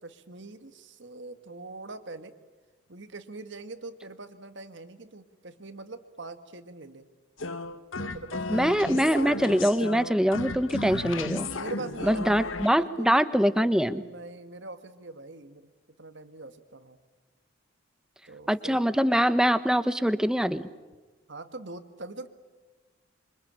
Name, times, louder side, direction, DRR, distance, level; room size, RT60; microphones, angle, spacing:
voice 1, 0.0-2.4 2.9-7.0 8.0-9.1 11.5-12.4 12.7-13.2 13.9-15.7 16.0-17.0 18.3-18.8 21.3-22.3, right 3 dB, 60° right, 9 dB, 1.7 m, -43 dB
sound 1, 7.4-12.7, left 3 dB, 70° left, 1.3 m, -34 dB
voice 2, 8.5-11.5 12.0-14.0 18.5-20.7, equal, 5° right, 13 dB, 0.9 m, -24 dB
27.5 x 24.5 x 8.8 m, 1.3 s
head